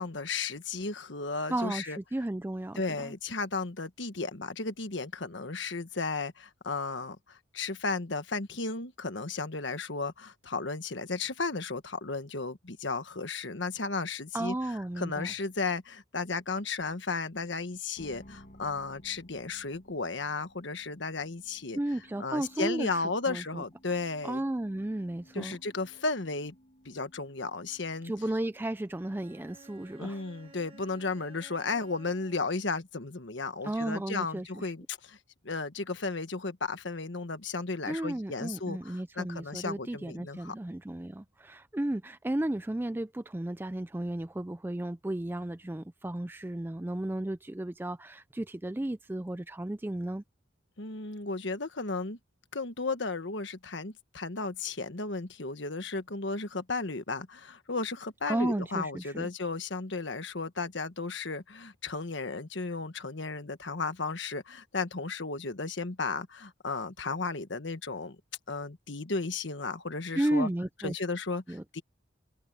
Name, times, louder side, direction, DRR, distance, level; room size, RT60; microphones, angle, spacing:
voice 1, 0.0-2.0 2.8-14.5 15.0-21.8 22.2-24.4 25.3-26.5 26.8-28.1 30.0-35.2 35.4-40.5 50.8-52.2 52.5-68.2 68.5-70.5 70.8-71.8, left 3 dB, 65° left, 1.4 m, -34 dB
voice 2, 1.5-3.1 14.3-15.3 21.7-23.6 24.2-25.5 28.0-30.2 33.6-34.7 37.9-50.2 58.3-59.3 70.1-70.9 71.5-71.6, right 1 dB, 10° right, 0.3 m, -34 dB
sound 1, 18.0-30.3, equal, 40° left, 7.0 m, -58 dB
Bowed string instrument, 28.9-32.7, right 2 dB, 25° right, 1.1 m, -55 dB
open air
head